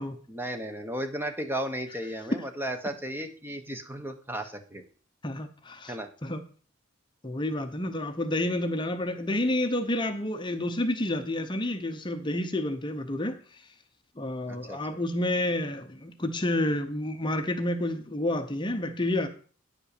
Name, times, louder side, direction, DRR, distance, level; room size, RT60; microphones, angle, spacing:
voice 1, 0.3-4.8 5.9-6.1 14.5-14.8, right 1 dB, 10° right, 1.0 m, -34 dB
voice 2, 5.2-6.0 6.2-6.4 7.2-13.4 14.2-19.3, left 1 dB, 25° left, 0.8 m, -29 dB
9.9 x 5.5 x 6.6 m
head